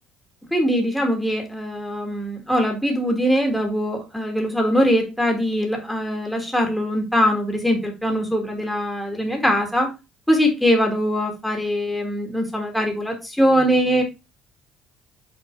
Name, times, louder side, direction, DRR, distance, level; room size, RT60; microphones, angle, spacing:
voice 1, 0.5-9.9 10.3-14.0, equal, 5° left, 2 dB, 1.7 m, -22 dB
5.9 x 3.7 x 4.5 m, 0.26 s
cardioid pair, 100°, 0 cm